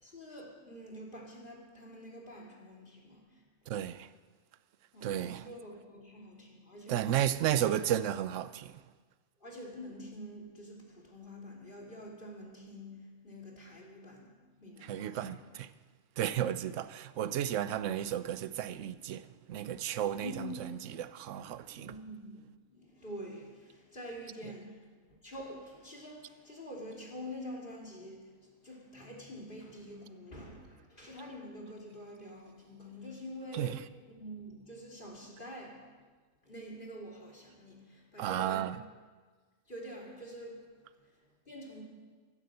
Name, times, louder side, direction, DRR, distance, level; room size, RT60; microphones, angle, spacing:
voice 1, 0.0-3.4 4.9-7.1 7.5-7.6 9.4-15.4 20.2-20.7 21.7-36.0 36.4-38.7 39.7-41.8, equal, 40° left, 3.3 m, -47 dB
voice 2, 3.7-4.1 5.0-5.5 6.9-8.8 14.8-15.7 16.2-21.9 33.5-33.8 38.2-38.7, right 11 dB, 70° right, 1.0 m, -33 dB
15.0 x 12.0 x 7.8 m
omnidirectional pair, 1.4 m